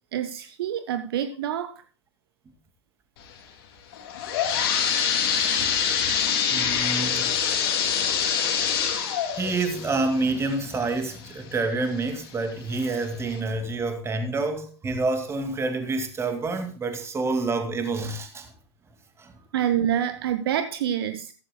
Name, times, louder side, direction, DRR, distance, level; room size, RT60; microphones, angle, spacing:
voice 1, 0.1-1.8 19.5-21.3, right 10 dB, 55° right, 0.8 m, -27 dB
sound 1, 3.9-11.5 12.0-12.1 12.8-12.9 13.4-13.5, left 7 dB, 55° left, 2.6 m, -25 dB
voice 2, 5.3-6.0 6.5-7.7 8.7-9.0 9.3-18.5 19.2-19.3, right 3 dB, 20° right, 2.2 m, -28 dB
14.5 x 14.0 x 2.2 m
figure-of-eight pair, 90°, 15 cm